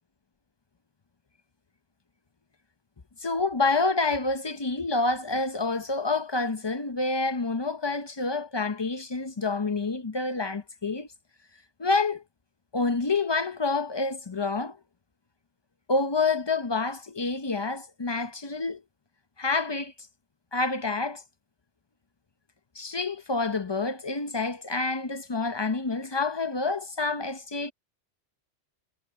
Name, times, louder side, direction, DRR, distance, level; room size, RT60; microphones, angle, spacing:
voice 1, 3.2-11.1 11.8-12.2 12.7-14.8 15.9-18.8 19.4-19.9 20.5-21.2 22.8-27.7, left 3 dB, 30° left, 0.5 m, -28 dB
omnidirectional pair, 1.2 m